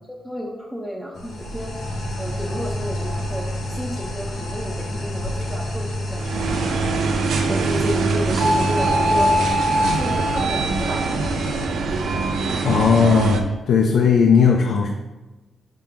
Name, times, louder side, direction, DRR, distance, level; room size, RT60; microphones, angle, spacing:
voice 1, 0.1-1.7 2.2-6.3 6.7-9.3 9.8-11.1, equal, ahead, -3 dB, 0.6 m, -32 dB
sound 1, 1.1-11.7, left 1 dB, 80° left, 1.4 m, -30 dB
sound 2, 6.1-13.4, right 2 dB, 75° right, 0.7 m, -22 dB
voice 2, 12.6-14.9, left 5 dB, 65° left, 2 dB, 0.6 m, -17 dB
5.9 x 5.7 x 3.6 m, 1.1 s
wide cardioid pair, 170°, 0 cm